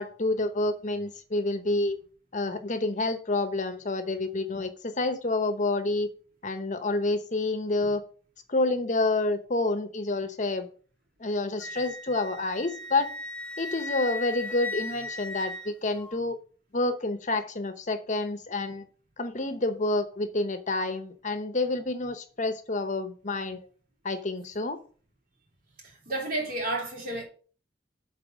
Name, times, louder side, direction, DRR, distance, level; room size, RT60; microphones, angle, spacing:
voice 1, 0.0-2.0 2.3-6.1 6.4-8.0 8.5-10.7 11.2-13.1 13.6-16.4 16.7-18.8 19.2-23.7 24.0-24.8, left 2 dB, 45° left, 0.9 m, -28 dB
Wind instrument woodwind instrument, 11.6-16.2, left 2 dB, 5° left, 0.9 m, -37 dB
voice 2, 26.0-27.2, right 2 dB, 55° right, 3.4 m, -31 dB
8.0 x 4.3 x 6.3 m
head